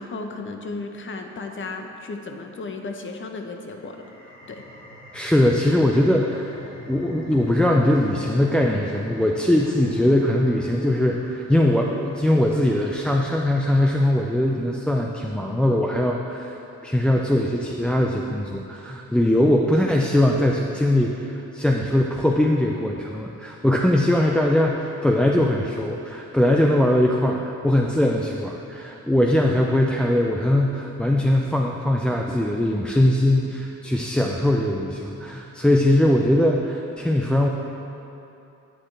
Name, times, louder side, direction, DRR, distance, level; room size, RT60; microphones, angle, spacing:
voice 1, 0.0-4.6, left 3 dB, 40° left, 4 dB, 0.8 m, -35 dB
sound 1, 3.7-14.9, left 1 dB, 20° left, 1.8 m, -44 dB
voice 2, 5.1-6.6 6.9-16.6 16.8-37.5, left 1 dB, 5° left, 0 dB, 0.4 m, -21 dB
9.7 x 6.8 x 3.3 m, 2.9 s
cardioid pair, 90°, 30 cm